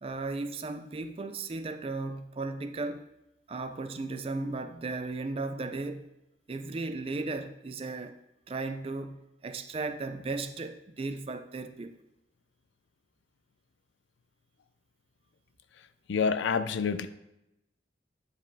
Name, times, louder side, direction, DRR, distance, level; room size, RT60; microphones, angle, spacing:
voice 1, 0.0-3.1 3.5-6.1 6.5-8.2 8.5-11.9, right 3 dB, 30° right, 0.4 m, -36 dB
voice 2, 16.1-17.1, left 5 dB, 75° left, 0.4 m, -27 dB
9.0 x 5.1 x 2.7 m
head